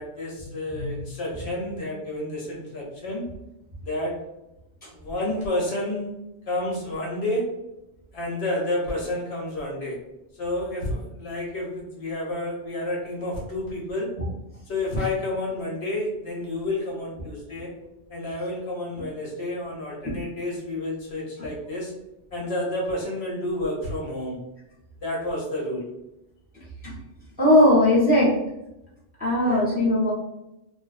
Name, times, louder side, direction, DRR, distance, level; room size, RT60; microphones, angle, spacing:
voice 1, 0.0-3.2 3.8-4.1 4.9-6.1 6.5-7.5 8.1-10.0 10.4-14.1 14.7-17.7 18.1-21.9 22.3-24.4 25.0-25.9 29.4-29.6, left 1 dB, 60° left, -4 dB, 0.9 m, -30 dB
voice 2, 0.7-1.1 26.8-26.9 27.4-28.3 29.2-30.1, left 1 dB, 10° right, -8 dB, 0.6 m, -19 dB
2.5 x 2.1 x 2.3 m, 0.89 s
omnidirectional pair, 1.3 m